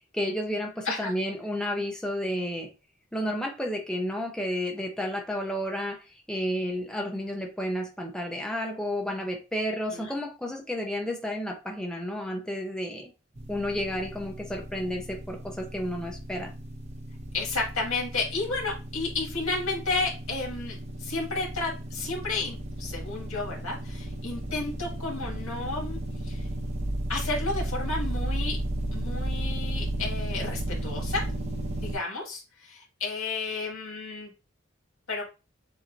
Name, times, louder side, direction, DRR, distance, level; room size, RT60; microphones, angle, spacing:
voice 1, 0.1-2.7 3.1-13.1 13.5-16.5, equal, 5° left, 1 dB, 0.7 m, -31 dB
sound 1, 13.4-32.0, right 1 dB, 30° right, 0.9 m, -34 dB
voice 2, 17.3-26.5 27.1-28.6 28.9-31.3 31.8-34.3 35.1-35.2, left 3 dB, 85° left, -2 dB, 2.1 m, -32 dB
7.2 x 2.8 x 2.6 m, 0.30 s
head